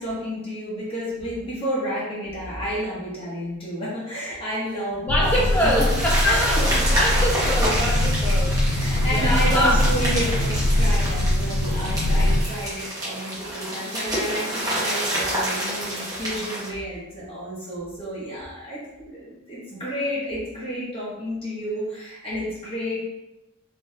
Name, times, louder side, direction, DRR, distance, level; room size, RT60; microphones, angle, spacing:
voice 1, 0.0-5.9 6.2-6.6 8.7-23.0, equal, 30° left, -7 dB, 1.1 m, -30 dB
voice 2, 5.0-9.8, equal, 10° left, -4 dB, 0.6 m, -25 dB
sound 1, 5.1-12.4, left 1 dB, 70° left, 0.3 m, -22 dB
sound 2, 5.2-16.7, right 1 dB, 20° right, 1.0 m, -28 dB
3.3 x 2.6 x 2.6 m, 0.97 s
head